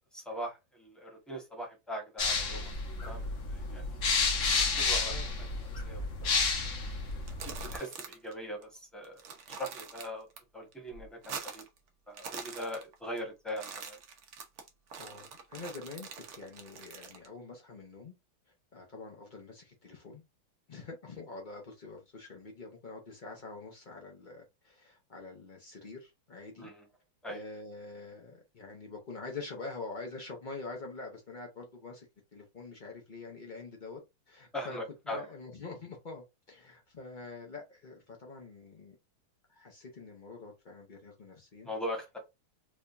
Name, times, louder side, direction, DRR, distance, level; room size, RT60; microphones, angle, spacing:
voice 1, 0.1-2.7 3.0-3.9 4.7-5.1 5.8-6.4 7.4-9.2 9.6-10.3 10.5-11.6 12.1-14.0 26.6-26.9 27.2-27.4 34.5-35.2 41.6-42.2, equal, ahead, 0.8 m, -40 dB
sound 1, 2.2-7.8, left 4 dB, 50° left, 1.0 m, -31 dB
sound 2, 7.1-8.3 8.6-8.7 9.0-10.4 10.7-11.8 12.1-13.2 13.5-17.3, right 6 dB, 80° right, 0.6 m, -44 dB
voice 2, 15.0-18.1 18.7-20.2 20.7-26.7 27.3-32.1 32.3-34.0 34.3-34.8 35.1-38.9 39.5-41.7, left 3 dB, 90° left, 0.4 m, -45 dB
4.9 x 2.3 x 2.5 m
omnidirectional pair, 2.2 m